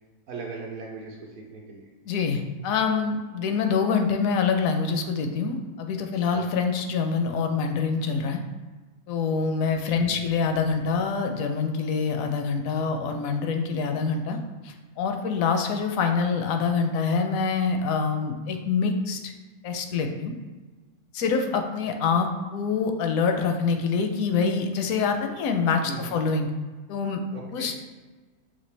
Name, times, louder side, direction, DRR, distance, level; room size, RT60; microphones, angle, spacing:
voice 1, 0.3-1.9 6.3-6.5 9.9-10.3 25.8-26.2 27.3-27.7, right 4 dB, 70° right, -2 dB, 1.0 m, -39 dB
voice 2, 2.1-8.4 9.1-14.4 14.6-19.3 19.6-20.3 21.1-26.5 26.9-27.2 27.5-27.8, left 5 dB, 70° left, 5 dB, 0.9 m, -25 dB
5.8 x 2.7 x 3.2 m, 1.3 s
omnidirectional pair, 1.6 m